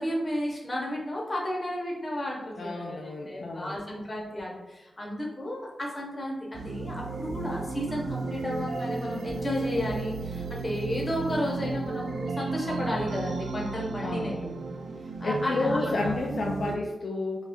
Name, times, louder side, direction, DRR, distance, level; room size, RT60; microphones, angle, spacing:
voice 1, 0.0-14.5 14.8-14.9 15.2-16.0, left 1 dB, 25° left, -2 dB, 0.8 m, -33 dB
voice 2, 2.6-3.8 14.0-14.4 15.2-17.5, left 2 dB, 60° left, -1 dB, 0.3 m, -31 dB
sound 1, 6.5-16.8, right 3 dB, 85° right, 0.3 m, -34 dB
2.5 x 2.3 x 3.5 m, 1.0 s
wide cardioid pair, 90°, 0 cm